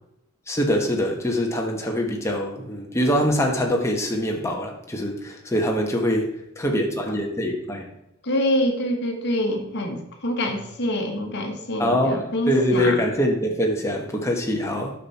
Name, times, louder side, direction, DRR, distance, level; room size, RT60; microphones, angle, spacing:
voice 1, 0.5-7.9 11.8-14.9, equal, 15° left, 1 dB, 1.2 m, -24 dB
voice 2, 8.2-13.0, left 1 dB, 50° left, 3 dB, 1.3 m, -25 dB
9.2 x 6.0 x 4.2 m, 0.85 s
head